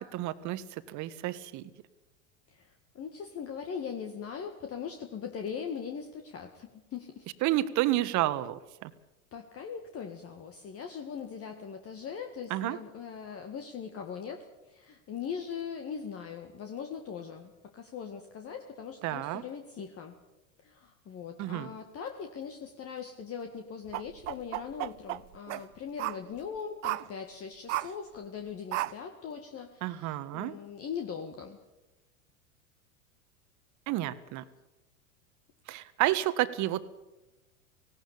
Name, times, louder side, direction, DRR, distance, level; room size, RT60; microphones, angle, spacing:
voice 1, 0.0-1.7 7.4-8.9 12.5-12.8 19.0-19.4 21.4-21.7 29.8-30.6 33.9-34.4 35.7-36.8, right 15 dB, 45° right, 13 dB, 1.5 m, -30 dB
voice 2, 2.5-7.3 9.3-20.1 20.6-31.6, left 7 dB, 35° left, 5 dB, 2.0 m, -40 dB
sound 1, 23.9-25.6 26.0-26.2 26.8-27.1 27.7-27.9 28.7-28.9, right 19 dB, 60° right, 0.8 m, -33 dB
18.5 x 17.5 x 8.5 m, 1.0 s
hypercardioid pair, 90°, 42 cm